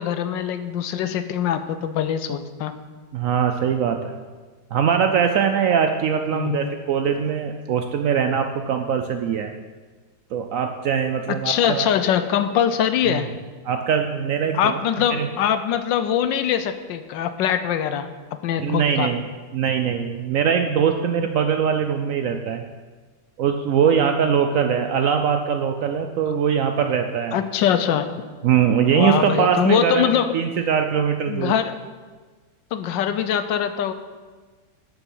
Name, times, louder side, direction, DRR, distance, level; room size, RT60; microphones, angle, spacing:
voice 1, 0.0-2.7 6.3-6.7 11.3-13.3 14.5-19.1 27.3-28.1 28.9-30.3 31.3-31.8 32.7-33.9, left 9 dB, 75° left, 11 dB, 1.2 m, -23 dB
voice 2, 3.1-4.2 4.7-9.5 10.3-11.9 13.1-13.2 13.7-15.3 18.6-19.2 19.5-22.6 23.4-27.4 28.4-31.5, right 7 dB, 85° right, 6 dB, 0.7 m, -22 dB
12.0 x 6.9 x 5.5 m, 1.4 s
omnidirectional pair, 2.1 m